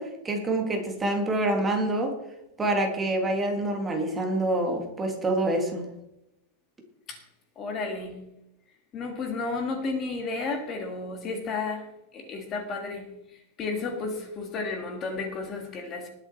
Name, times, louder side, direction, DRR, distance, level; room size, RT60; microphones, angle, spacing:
voice 1, 0.0-2.1 2.6-5.9, right 1 dB, 10° right, 2 dB, 1.7 m, -26 dB
voice 2, 7.6-8.2 8.9-11.8 12.1-13.1 13.6-16.1, left 3 dB, 20° left, 5 dB, 1.7 m, -32 dB
20.0 x 7.2 x 4.1 m, 0.86 s
supercardioid pair, 175°, 0 cm